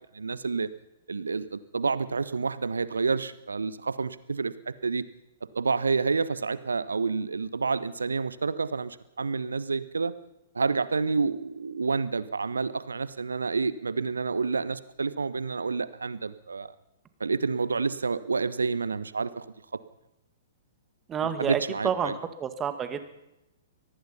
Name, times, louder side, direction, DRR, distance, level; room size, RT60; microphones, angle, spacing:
voice 1, 0.1-0.7 1.1-5.0 5.5-10.1 10.5-16.7 17.2-19.5 21.4-22.1, right 4 dB, 75° right, 16 dB, 1.1 m, -29 dB
voice 2, 21.1-23.0, right 7 dB, 20° right, 10 dB, 2.1 m, -29 dB
24.0 x 19.0 x 5.7 m, 0.90 s
figure-of-eight pair, 110°, 0 cm